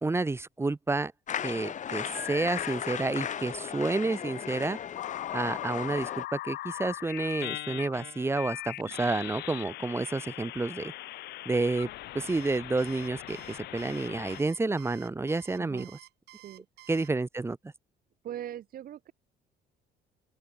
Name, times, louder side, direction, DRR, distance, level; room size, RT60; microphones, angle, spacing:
voice 1, 0.0-1.1 1.4-4.8 5.3-10.9 11.4-11.9 12.1-15.9 16.9-17.6, right 3 dB, 15° right, 0.9 m, -30 dB
sound 1, 1.3-6.2, left 8 dB, 45° left, 3.4 m, -36 dB
sound 2, 2.0-2.9 3.8-14.4, left 16 dB, 75° left, 1.1 m, -40 dB
Alarm, 12.3-17.1, right 16 dB, 80° right, 2.8 m, -52 dB
voice 2, 15.6-15.9 16.4-16.9 18.2-19.1, right 11 dB, 60° right, 4.8 m, -41 dB
open air
cardioid pair, 110°, 17 cm